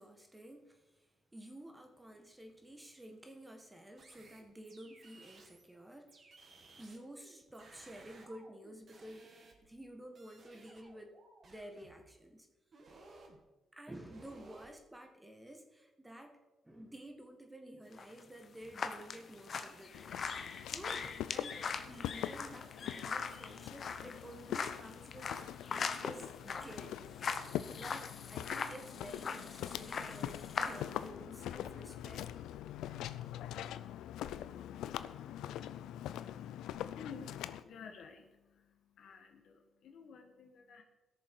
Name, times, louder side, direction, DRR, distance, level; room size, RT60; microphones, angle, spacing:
voice 1, 0.0-6.4 6.8-9.3 9.6-11.2 11.4-12.5 13.7-20.2 20.7-21.6 21.9-25.4 26.0-27.0 27.8-32.3, right 1 dB, 10° right, 5 dB, 1.6 m, -52 dB
sound 1, 4.0-5.7 6.1-9.9 10.2-12.1 12.7-13.4 14.0-14.7, right 3 dB, 50° right, 2.0 m, -59 dB
sound 2, 17.9-31.1, left 5 dB, 50° left, 0.9 m, -41 dB
Walk footsteps, 19.9-37.6, left 11 dB, 85° left, 0.4 m, -43 dB
voice 2, 36.0-40.8, left 6 dB, 70° left, 4 dB, 1.5 m, -53 dB
16.5 x 6.9 x 4.7 m, 1.1 s
cardioid pair, 90°, 0 cm